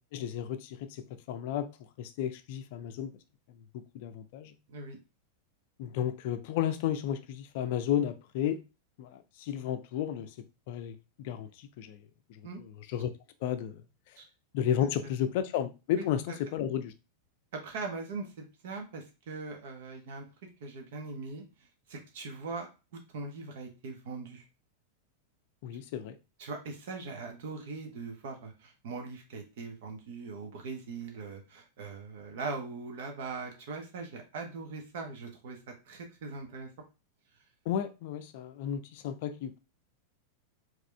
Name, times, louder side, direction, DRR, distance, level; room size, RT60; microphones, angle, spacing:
voice 1, 0.1-1.7 2.0-3.1 3.7-4.5 5.8-8.6 9.0-10.3 10.7-12.0 12.3-12.4 12.9-13.1 13.4-13.8 14.5-16.9 25.6-26.2 37.7-39.6, left 10 dB, 50° left, 0.5 m, -33 dB
voice 2, 17.5-20.3 20.6-21.4 21.9-22.7 23.1-24.4 26.4-35.6 35.8-36.7, right 4 dB, 55° right, 1.3 m, -40 dB
4.9 x 3.0 x 3.3 m
figure-of-eight pair, 90°, 0 cm